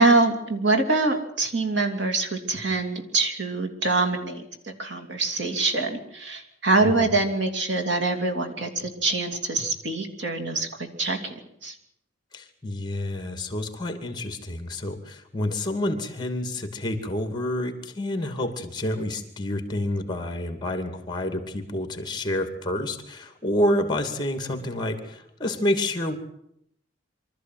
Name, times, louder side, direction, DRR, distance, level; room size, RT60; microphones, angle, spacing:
voice 1, 0.0-11.7, right 3 dB, 65° right, 3 dB, 2.9 m, -24 dB
voice 2, 6.8-7.1 12.3-26.2, left 1 dB, 25° left, 7 dB, 2.5 m, -28 dB
24.5 x 13.5 x 9.4 m, 0.77 s
head